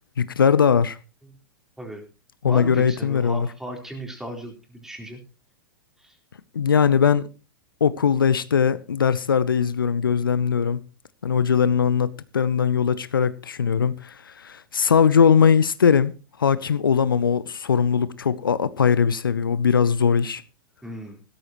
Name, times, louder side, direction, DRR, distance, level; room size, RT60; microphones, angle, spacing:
voice 1, 0.2-1.0 2.4-3.5 6.5-7.3 7.8-10.8 11.2-16.1 16.4-20.4, left 7 dB, 75° left, 0.7 m, -20 dB
voice 2, 2.4-5.2 6.0-6.2 20.8-21.2, equal, 5° right, 3.9 m, -36 dB
16.5 x 13.0 x 3.0 m
figure-of-eight pair, 100°, 11 cm